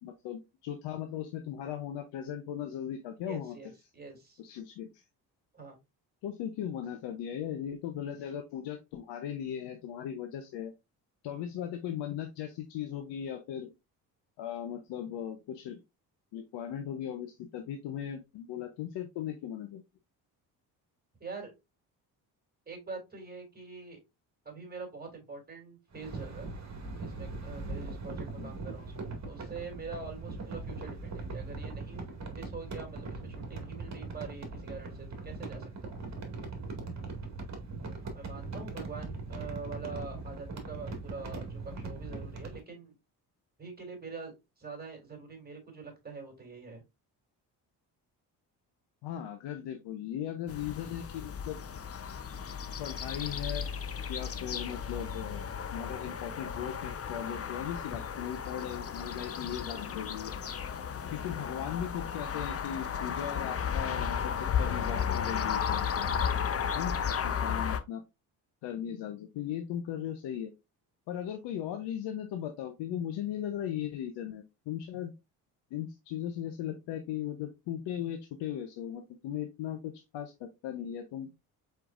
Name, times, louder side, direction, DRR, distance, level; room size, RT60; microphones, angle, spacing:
voice 1, 0.0-3.6 4.4-5.0 6.2-10.7 11.2-13.7 14.4-15.8 16.3-19.8 28.4-28.5 49.0-51.6 52.8-53.7 54.1-60.3 61.1-66.3 66.7-68.0 68.6-70.5 71.1-75.1 75.7-81.3, left 10 dB, 70° left, 6 dB, 0.9 m, -38 dB
voice 2, 3.2-4.4 5.5-5.8 21.2-21.5 22.7-24.0 24.4-26.5 27.0-36.1 38.0-42.9 43.6-46.8 66.9-67.1, right 4 dB, 20° right, 2 dB, 3.0 m, -45 dB
sound 1, 25.9-42.6, right 3 dB, 40° right, 2.0 m, -40 dB
sound 2, 50.5-67.8, left 7 dB, 35° left, 0.7 m, -34 dB
4.7 x 4.6 x 2.5 m, 0.23 s
supercardioid pair, 65°, 43 cm